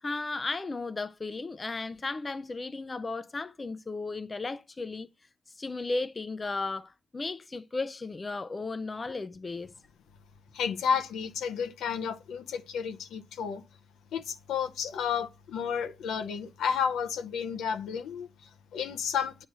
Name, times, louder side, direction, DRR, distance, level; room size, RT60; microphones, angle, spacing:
voice 1, 0.0-5.1 5.5-9.7, left 3 dB, 25° left, 0.3 m, -35 dB
voice 2, 10.5-13.6 14.1-19.5, left 7 dB, 75° left, 0.7 m, -32 dB
8.9 x 3.1 x 6.5 m
cardioid pair, 90°, 0 cm